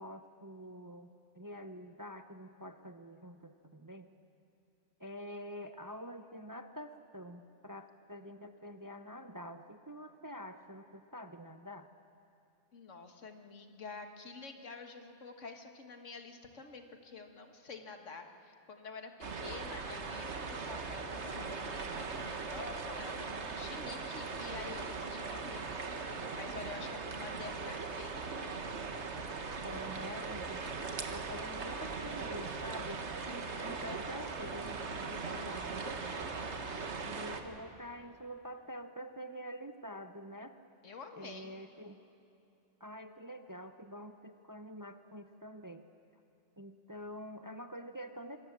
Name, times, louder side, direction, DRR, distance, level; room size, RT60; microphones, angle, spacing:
voice 1, 0.0-4.1 5.0-11.9 29.6-30.6 31.1-36.0 37.0-40.6 41.2-42.0 42.8-45.9 46.6-48.4, equal, 20° right, 8 dB, 0.6 m, -47 dB
voice 2, 12.7-25.6 26.1-28.4 40.8-41.5, left 4 dB, 80° left, 5 dB, 2.0 m, -48 dB
sound 1, 19.2-37.4, right 4 dB, 65° right, 1.7 m, -40 dB
27.0 x 22.0 x 7.5 m, 2.8 s
omnidirectional pair, 1.2 m